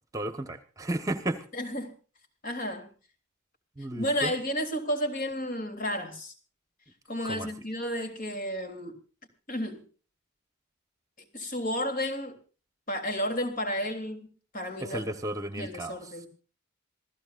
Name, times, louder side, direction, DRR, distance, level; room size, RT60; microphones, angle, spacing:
voice 1, 0.1-1.4 3.8-4.3 7.2-7.5 14.8-16.2, right 1 dB, 15° right, 1.3 m, -33 dB
voice 2, 1.5-1.9 2.4-2.9 4.0-6.3 7.1-9.0 9.5-9.8 11.3-12.4 12.9-14.3 14.5-15.0 15.5-16.3, equal, 45° left, 3.3 m, -32 dB
26.5 x 15.5 x 2.6 m
head